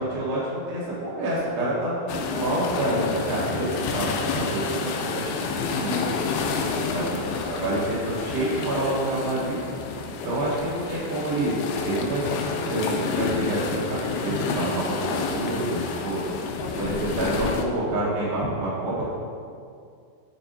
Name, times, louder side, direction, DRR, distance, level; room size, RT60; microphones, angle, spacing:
voice 1, 0.0-6.1 6.6-9.6 10.2-11.6 11.8-19.1, right 1 dB, 85° right, -7 dB, 3.5 m, -28 dB
sound 1, 2.1-17.6, left 5 dB, 80° left, 2.4 m, -29 dB
10.5 x 3.6 x 2.7 m, 2.3 s
omnidirectional pair, 4.5 m